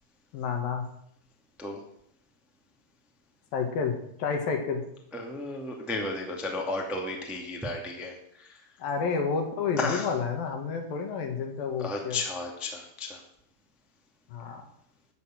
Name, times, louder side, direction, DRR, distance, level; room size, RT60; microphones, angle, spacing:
voice 1, 0.3-0.9 3.5-4.8 8.8-12.2 14.3-14.6, left 5 dB, 65° left, 4 dB, 3.4 m, -30 dB
voice 2, 5.1-8.6 9.8-10.1 11.8-13.2, left 2 dB, ahead, 1 dB, 1.2 m, -33 dB
13.0 x 7.0 x 9.1 m, 0.73 s
omnidirectional pair, 4.6 m